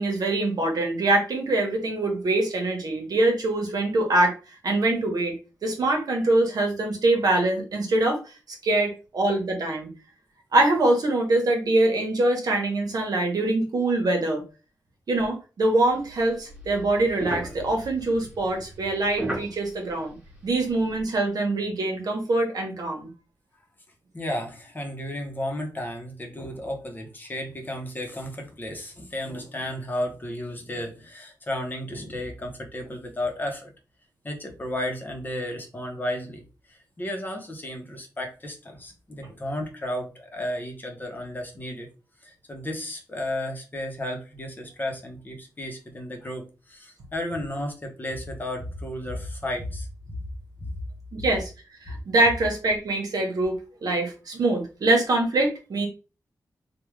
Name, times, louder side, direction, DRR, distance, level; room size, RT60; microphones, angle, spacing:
voice 1, 0.0-4.3 4.6-5.3 5.6-8.3 8.6-9.9 10.5-14.4 15.1-20.2 20.4-23.1 51.1-51.5 51.8-55.9, right 2 dB, 65° right, 2 dB, 1.0 m, -24 dB
sound 1, 15.9-20.9, right 1 dB, 15° right, 1.2 m, -37 dB
voice 2, 24.1-33.7 34.2-36.4 36.7-41.9 42.2-50.2 50.6-50.7 51.2-51.3 51.9-52.0, left 1 dB, 25° left, 2 dB, 0.8 m, -33 dB
3.4 x 2.2 x 3.1 m, 0.32 s
wide cardioid pair, 125°, 7 cm